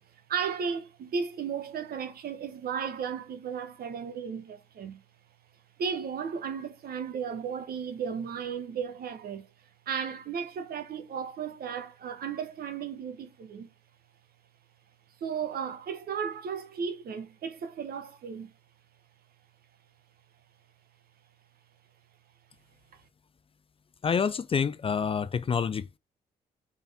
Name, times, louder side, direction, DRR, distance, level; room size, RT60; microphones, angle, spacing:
voice 1, 0.3-5.0 5.8-9.5 9.9-13.7 15.2-18.5, right 6 dB, 70° right, 1.0 m, -34 dB
voice 2, 24.0-26.0, left 6 dB, 35° left, 0.4 m, -28 dB
4.3 x 3.5 x 3.5 m
supercardioid pair, 65°, 17 cm